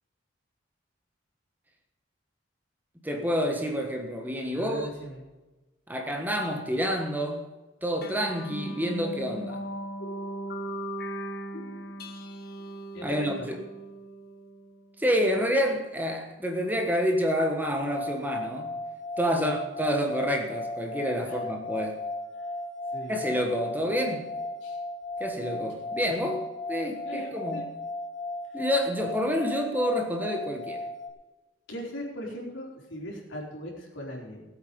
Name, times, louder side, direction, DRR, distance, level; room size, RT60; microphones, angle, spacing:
voice 1, 3.0-4.9 5.9-7.5 7.8-9.6 13.0-13.6 15.0-18.7 19.2-22.0 23.1-24.3 25.2-26.4 26.7-27.6 28.5-30.8, equal, 10° right, 3 dB, 1.3 m, -28 dB
voice 2, 4.5-5.2 12.9-13.5 19.3-19.5 21.2-21.4 22.9-23.2 24.6-24.8 27.0-27.7 28.5-28.6 29.2-29.3 31.7-34.5, equal, 75° left, -2 dB, 4.3 m, -39 dB
sound 1, 8.0-14.9, right 1 dB, 50° left, 1.5 m, -38 dB
sound 2, 17.7-31.1, left 2 dB, 25° left, 3.0 m, -36 dB
19.5 x 8.3 x 5.3 m, 1.2 s
head